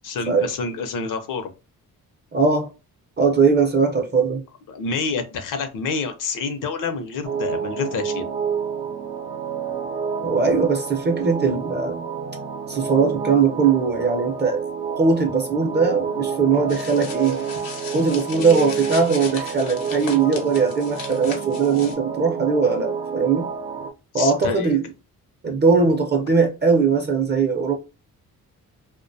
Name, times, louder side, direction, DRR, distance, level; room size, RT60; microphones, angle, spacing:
voice 1, 0.0-1.5 4.7-8.2 24.1-24.8, left 4 dB, 65° left, 0.6 m, -28 dB
voice 2, 2.3-2.7 3.2-4.5 10.2-12.0 12.7-14.7 15.0-17.6 17.9-23.5 24.1-24.8 25.4-27.7, right 5 dB, 30° right, 0.5 m, -20 dB
sound 1, 7.2-23.9, right 6 dB, 75° right, 0.6 m, -29 dB
sound 2, 16.7-21.9, left 5 dB, 85° left, 0.9 m, -37 dB
2.4 x 2.2 x 2.6 m
cardioid pair, 110°, 35 cm